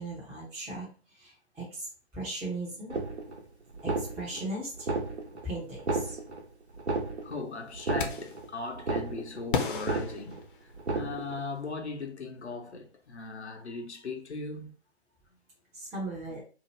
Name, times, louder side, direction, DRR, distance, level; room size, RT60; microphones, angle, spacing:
voice 1, 0.0-1.9 2.1-3.0 3.8-4.9 5.4-6.2 15.7-16.4, right 2 dB, 5° right, 0.5 m, -38 dB
sound 1, 2.9-3.4 3.7-4.5 4.8-5.5 5.7-6.4 6.8-7.4 7.7-8.5 8.7-9.5 9.7-10.4 10.8-11.4, right 3 dB, 80° right, 1.0 m, -32 dB
voice 2, 7.2-14.7, left 3 dB, 80° left, 0.8 m, -39 dB
sound 2, 8.0-8.5 9.5-11.0, left 5 dB, 50° left, 0.6 m, -34 dB
2.7 x 2.1 x 3.1 m
figure-of-eight pair, 125°, 33 cm